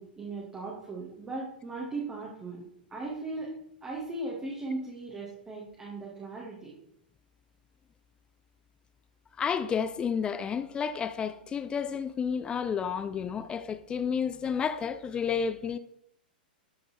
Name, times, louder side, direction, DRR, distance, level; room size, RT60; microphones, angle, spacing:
voice 1, 0.0-2.6 2.9-3.5 3.8-6.7, right 2 dB, 15° right, 2.3 m, -37 dB
voice 2, 9.4-15.8, left 7 dB, 20° left, 0.5 m, -31 dB
12.5 x 5.3 x 4.5 m
figure-of-eight pair, 105°, 5 cm